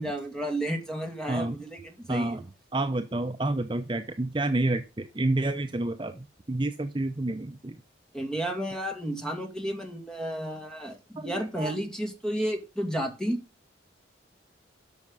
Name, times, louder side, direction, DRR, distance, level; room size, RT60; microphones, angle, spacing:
voice 1, 0.0-2.4 8.1-13.4, right 1 dB, 5° left, 2 dB, 2.4 m, -32 dB
voice 2, 1.3-1.6 2.1-2.5 2.7-7.8 11.2-11.7, right 2 dB, 25° right, 6 dB, 0.7 m, -29 dB
12.0 x 6.3 x 5.5 m, 0.30 s
head